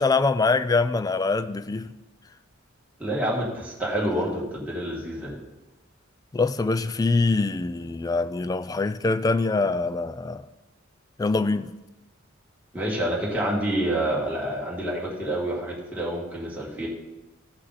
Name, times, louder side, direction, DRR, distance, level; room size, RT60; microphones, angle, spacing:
voice 1, 0.0-1.9 6.3-10.4 11.2-11.7, left 3 dB, 20° left, 14 dB, 0.3 m, -24 dB
voice 2, 3.0-5.4 12.7-16.9, right 1 dB, 5° right, -6 dB, 2.1 m, -28 dB
15.0 x 5.5 x 4.1 m, 1.1 s
head